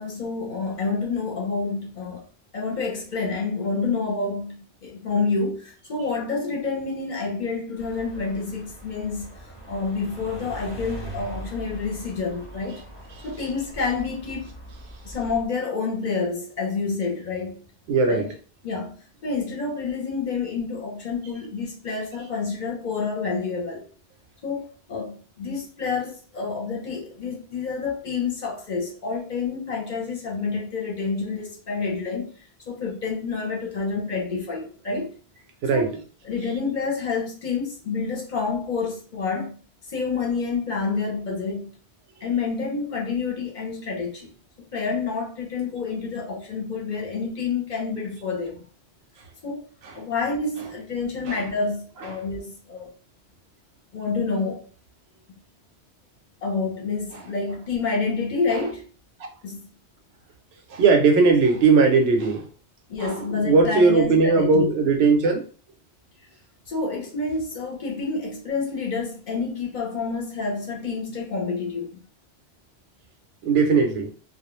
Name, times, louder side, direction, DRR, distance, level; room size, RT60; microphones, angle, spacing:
voice 1, 0.0-2.2 2.5-9.4 9.7-12.8 13.2-14.5 15.0-17.6 18.1-18.3 18.6-23.8 24.4-32.3 32.7-35.1 35.7-36.0 36.2-39.6 39.9-41.7 42.2-44.3 44.7-48.6 49.4-49.6 49.9-52.9 53.9-54.7 56.4-58.9 59.4-59.6 62.9-64.7 66.7-71.9, left 4 dB, 50° left, 0.7 m, -28 dB
sound 1, 7.8-15.5, right 1 dB, 15° left, 0.6 m, -41 dB
voice 2, 17.9-18.3 35.6-35.9 51.3-51.4 60.7-62.4 63.0-65.4 73.4-74.1, right 4 dB, 70° right, 0.8 m, -19 dB
2.3 x 2.0 x 3.0 m
omnidirectional pair, 1.1 m